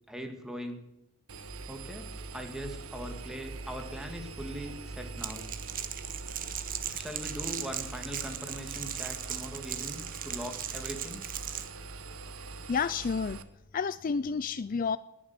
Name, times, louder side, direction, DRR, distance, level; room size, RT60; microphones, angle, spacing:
voice 1, 0.1-0.8 1.7-5.5 6.9-11.3, equal, 5° right, 4 dB, 2.0 m, -41 dB
Engine, 1.3-13.4, right 3 dB, 80° right, 1.2 m, -43 dB
Crackle, 5.2-11.7, right 10 dB, 45° right, 1.3 m, -38 dB
voice 2, 12.7-13.4 13.7-15.0, left 5 dB, 40° left, 15 dB, 0.4 m, -30 dB
20.0 x 7.4 x 6.8 m, 0.91 s
head